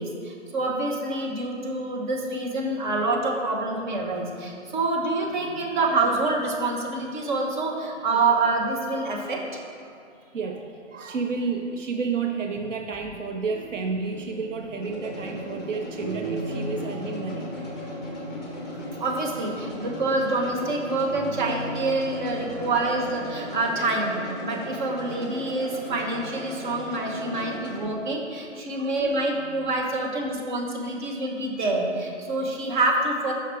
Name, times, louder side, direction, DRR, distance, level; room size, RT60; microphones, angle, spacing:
voice 1, 0.0-9.4 19.0-33.3, right 2 dB, 40° right, 0 dB, 1.1 m, -26 dB
voice 2, 10.3-17.5 22.5-22.7 28.6-29.2, right 4 dB, 80° right, 3 dB, 0.7 m, -31 dB
sound 1, 12.5-27.9, left 1 dB, ahead, 1.1 m, -37 dB
sound 2, 13.5-23.3, right 1 dB, 20° right, 0.6 m, -39 dB
5.8 x 5.7 x 4.7 m, 2.4 s
hypercardioid pair, 140°, 37 cm